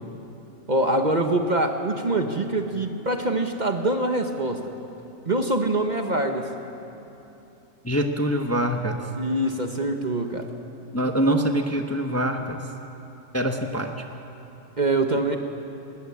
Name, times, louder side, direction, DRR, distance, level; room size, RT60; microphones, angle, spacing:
voice 1, 0.7-4.6 5.3-6.5 9.2-10.5 14.8-15.4, right 2 dB, 35° right, 5 dB, 1.3 m, -24 dB
voice 2, 7.8-9.0 10.9-12.6 13.3-13.9, right 1 dB, 10° left, 4 dB, 1.0 m, -24 dB
21.0 x 20.0 x 8.5 m, 2.9 s
omnidirectional pair, 1.4 m